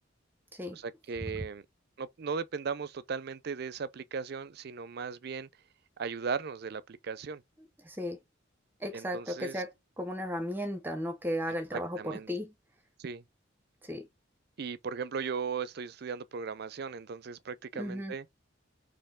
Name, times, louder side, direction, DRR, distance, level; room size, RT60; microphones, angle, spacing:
voice 1, 0.7-1.7 2.0-5.5 6.0-7.4 8.9-9.6 11.7-12.3 13.0-13.2 14.6-18.2, right 5 dB, 55° right, 0.4 m, -37 dB
voice 2, 7.6-8.2 8.8-12.6 13.8-14.1 17.7-18.1, equal, 10° right, 0.7 m, -35 dB
4.3 x 3.0 x 3.6 m
head